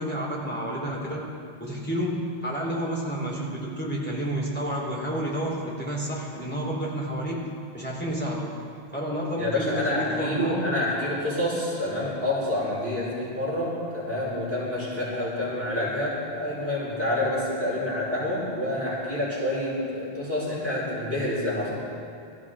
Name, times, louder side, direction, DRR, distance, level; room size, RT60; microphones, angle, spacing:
voice 1, 0.0-7.5 7.7-8.5 8.9-10.7, equal, 10° left, -5 dB, 3.8 m, -30 dB
voice 2, 9.4-21.9, left 1 dB, 55° right, -7 dB, 5.0 m, -28 dB
24.0 x 14.5 x 3.8 m, 2.5 s
omnidirectional pair, 1.2 m